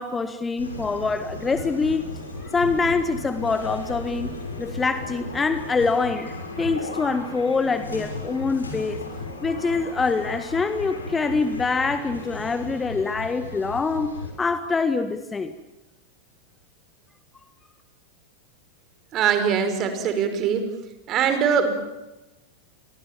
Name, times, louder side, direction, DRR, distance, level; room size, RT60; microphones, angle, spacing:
voice 1, 0.0-2.1 2.4-4.3 4.6-9.0 9.4-15.5, left 4 dB, 15° left, 10 dB, 1.7 m, -25 dB
sound 1, 0.6-14.3, left 2 dB, 75° left, 6.2 m, -35 dB
voice 2, 19.1-20.7 21.1-21.7, right 7 dB, 35° right, 9 dB, 5.3 m, -22 dB
29.5 x 23.5 x 7.5 m, 1.0 s
figure-of-eight pair, 90°, 0 cm